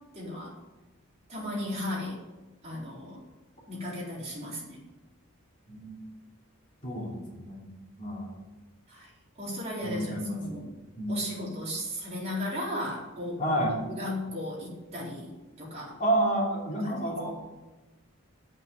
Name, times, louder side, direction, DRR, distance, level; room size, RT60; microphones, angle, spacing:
voice 1, 0.1-0.5 1.3-2.2 2.6-3.2 3.7-4.8 8.9-9.1 9.4-10.6 11.1-13.4 13.9-15.3 15.6-16.0 16.8-17.1, left 1 dB, 30° right, -5 dB, 4.3 m, -35 dB
voice 2, 5.7-6.0 6.8-7.7 8.0-8.3 9.8-10.6 10.9-11.3 13.4-13.8 16.0-17.3, right 1 dB, 35° left, -3 dB, 3.2 m, -30 dB
8.8 x 8.5 x 9.4 m, 1.1 s
head